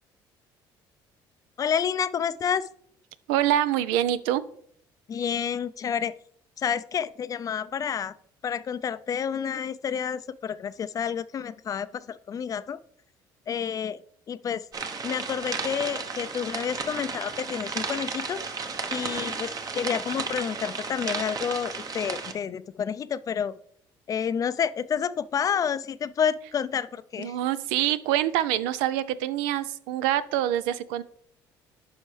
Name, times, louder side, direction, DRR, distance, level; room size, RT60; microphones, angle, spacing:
voice 1, 1.6-2.7 5.1-6.1 6.6-8.1 8.4-12.8 13.5-14.0 14.3-14.7 15.0-23.5 24.1-27.4, left 7 dB, 40° left, 15 dB, 0.4 m, -29 dB
voice 2, 3.3-4.4 27.2-31.0, right 12 dB, 90° right, 15 dB, 0.4 m, -25 dB
sound 1, 14.7-22.3, right 5 dB, 40° right, 0.9 m, -33 dB
9.7 x 5.5 x 3.2 m, 0.64 s
supercardioid pair, 90°, 9 cm